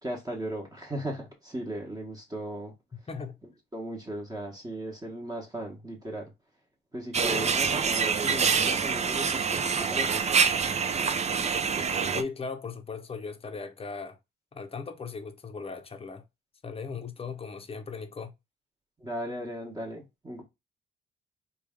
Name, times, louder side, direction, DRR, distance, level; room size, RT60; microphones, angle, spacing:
voice 1, 0.0-2.7 3.7-6.3 6.9-10.2 19.0-20.4, right 1 dB, 20° right, 1.1 m, -37 dB
voice 2, 3.1-3.4 12.1-14.2 14.5-16.2 16.6-18.3, left 5 dB, 30° left, 0.7 m, -38 dB
sound 1, 7.1-12.2, right 6 dB, 35° right, 0.5 m, -26 dB
3.3 x 2.4 x 3.5 m
cardioid pair, 90°, 20 cm